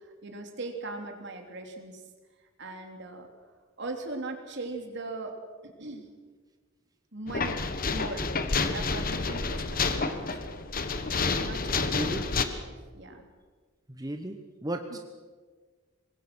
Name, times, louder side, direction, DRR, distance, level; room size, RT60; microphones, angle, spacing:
voice 1, 0.2-2.0 2.6-3.3 3.8-5.4 5.6-6.1 7.1-7.6 7.9-8.4 8.7-9.6 9.9-10.6 11.4-13.3 14.9-15.0, right 2 dB, 60° right, 4 dB, 3.2 m, -39 dB
sound 1, 7.3-12.4, left 4 dB, 45° left, 1.3 m, -29 dB
voice 2, 11.8-12.2 14.0-15.0, right 1 dB, 20° right, 5 dB, 1.1 m, -35 dB
25.0 x 20.5 x 6.2 m, 1.5 s
head